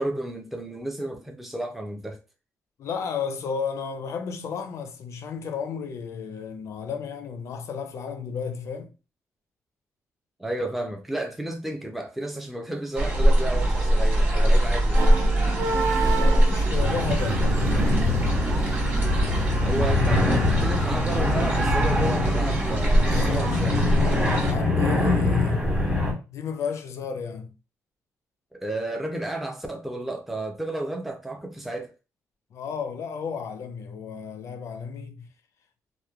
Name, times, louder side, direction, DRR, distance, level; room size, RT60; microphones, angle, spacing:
voice 1, 0.0-2.2 10.4-15.1 19.7-24.1 28.5-31.9, right 1 dB, 5° right, 0.4 m, -32 dB
voice 2, 2.8-8.9 16.2-17.6 23.0-25.8 26.3-27.5 32.5-35.3, left 6 dB, 60° left, 0.4 m, -33 dB
sound 1, 12.9-24.5, right 1 dB, 40° right, 1.2 m, -23 dB
sound 2, 15.0-21.9, right 4 dB, 70° right, 0.6 m, -32 dB
sound 3, 16.7-26.1, left 2 dB, 20° right, 1.1 m, -24 dB
2.9 x 2.1 x 2.3 m
cardioid pair, 125°, 6 cm